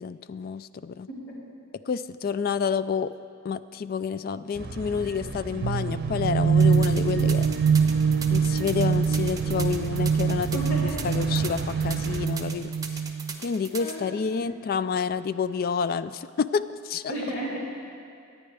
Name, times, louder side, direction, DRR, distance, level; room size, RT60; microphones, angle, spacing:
voice 1, 0.0-1.1 1.9-3.1 3.4-7.5 8.3-13.0 13.4-17.1, left 6 dB, 45° left, 14 dB, 0.3 m, -29 dB
voice 2, 1.1-1.4 10.5-11.3 13.3-13.4 13.8-14.1 17.1-17.6, right 1 dB, 75° left, -6 dB, 3.5 m, -34 dB
sound 1, 4.5-12.3, right 2 dB, 45° right, 0.7 m, -36 dB
sound 2, 5.6-13.4, right 6 dB, 90° right, 0.3 m, -24 dB
sound 3, 6.6-13.9, right 5 dB, 15° right, 0.9 m, -38 dB
24.0 x 9.5 x 3.4 m, 2.3 s
head